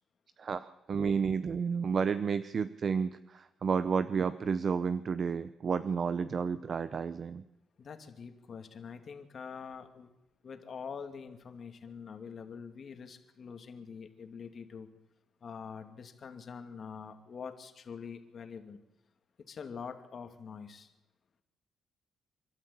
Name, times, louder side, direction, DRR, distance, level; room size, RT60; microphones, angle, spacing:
voice 1, 0.4-7.4, right 6 dB, 45° right, 13 dB, 0.7 m, -31 dB
voice 2, 7.8-10.1 10.4-14.9 15.4-18.8 19.5-20.9, left 6 dB, 50° left, 6 dB, 2.5 m, -45 dB
27.0 x 12.5 x 8.6 m, 0.96 s
cardioid pair, 105°, 0 cm